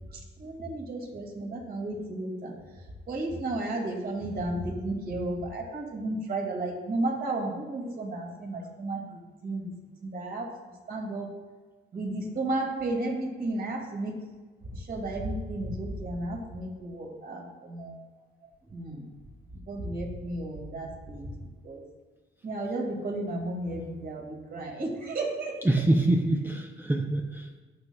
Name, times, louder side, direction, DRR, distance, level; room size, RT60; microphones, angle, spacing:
voice 1, 0.4-2.5 3.1-9.7 10.0-10.5 10.9-11.3 11.9-14.1 14.8-18.0 18.7-19.0 19.7-21.3 21.6-21.8 22.4-25.5, right 2 dB, 50° right, 0 dB, 2.2 m, -33 dB
voice 2, 25.6-27.6, right 1 dB, 10° right, 2 dB, 0.7 m, -26 dB
14.0 x 5.3 x 2.3 m, 1.4 s
cardioid pair, 90°, 20 cm